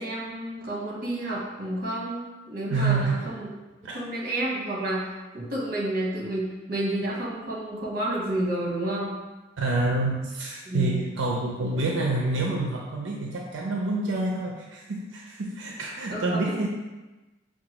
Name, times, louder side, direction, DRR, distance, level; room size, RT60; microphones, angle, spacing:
voice 1, 0.0-3.5 3.9-9.1 10.6-11.0 16.1-16.6, right 1 dB, 50° right, -4 dB, 1.1 m, -30 dB
voice 2, 2.7-3.4 3.8-4.0 9.6-16.7, right 2 dB, 85° right, -1 dB, 0.5 m, -27 dB
5.7 x 2.3 x 2.9 m, 1.1 s
head